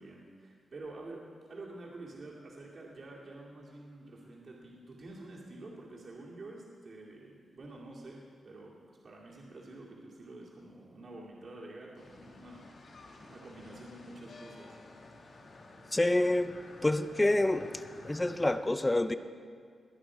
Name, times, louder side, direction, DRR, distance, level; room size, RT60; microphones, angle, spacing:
voice 1, 0.0-14.8, right 2 dB, 45° right, -4 dB, 2.3 m, -48 dB
sound 1, 12.0-18.6, left 2 dB, 50° left, 1.6 m, -52 dB
voice 2, 15.9-17.7 18.0-19.1, left 1 dB, 10° left, 11 dB, 0.5 m, -27 dB
21.0 x 9.2 x 4.9 m, 2.1 s
wide cardioid pair, 170°, 0 cm